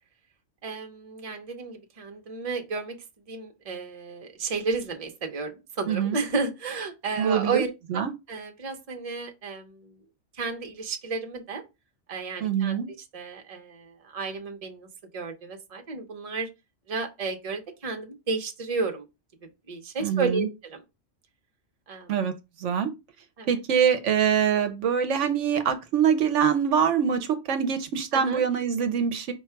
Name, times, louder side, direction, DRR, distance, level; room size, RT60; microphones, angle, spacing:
voice 1, 0.6-3.0 3.3-7.7 7.9-8.0 8.3-10.0 10.3-11.6 12.1-12.8 13.1-16.5 16.9-19.0 19.7-20.8 21.9-22.1 23.4-23.5 28.1-28.4, right 4 dB, 35° right, 0.8 m, -32 dB
voice 2, 5.9-6.2 7.2-7.6 7.9-8.1 12.4-12.9 20.0-20.5 22.1-22.3 22.6-22.9 23.5-29.3, right 7 dB, 70° right, 0.9 m, -24 dB
5.1 x 2.3 x 4.4 m
omnidirectional pair, 1.3 m